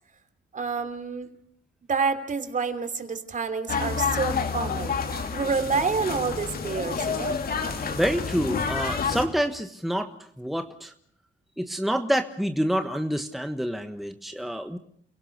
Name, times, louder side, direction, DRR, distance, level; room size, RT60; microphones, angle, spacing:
voice 1, 0.5-1.3 1.9-7.4, right 5 dB, 40° right, 9 dB, 3.1 m, -28 dB
sound 1, 3.7-9.3, left 5 dB, 50° left, 3.2 m, -29 dB
voice 2, 7.9-10.9 11.6-14.8, equal, ahead, 7 dB, 1.3 m, -27 dB
29.5 x 17.0 x 6.7 m, 0.64 s
cardioid pair, 90°, 20 cm